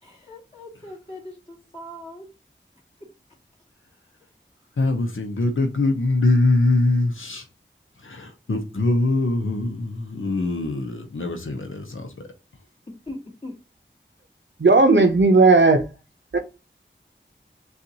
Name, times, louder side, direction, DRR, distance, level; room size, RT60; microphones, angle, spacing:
voice 1, 0.0-2.3 13.1-13.5, left 1 dB, 30° left, 2.1 m, -40 dB
voice 2, 4.8-7.5 8.0-12.3, left 2 dB, 90° left, 0.7 m, -23 dB
voice 3, 14.6-15.9 16.3-16.4, right 3 dB, 65° right, 0.7 m, -15 dB
6.5 x 2.5 x 2.8 m
wide cardioid pair, 45°, 20 cm